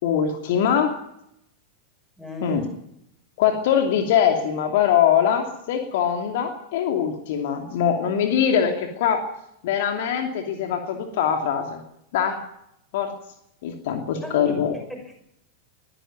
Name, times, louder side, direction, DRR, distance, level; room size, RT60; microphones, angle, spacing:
voice 1, 0.0-1.0 2.4-2.6 3.4-9.2 9.6-11.8 12.1-12.4 12.9-13.1 13.6-14.7, left 8 dB, 50° left, 4 dB, 2.8 m, -22 dB
voice 2, 2.2-2.8 14.2-14.5 14.9-15.2, equal, ahead, 4 dB, 6.6 m, -36 dB
22.0 x 14.5 x 9.2 m, 0.78 s
figure-of-eight pair, 90°, 0 cm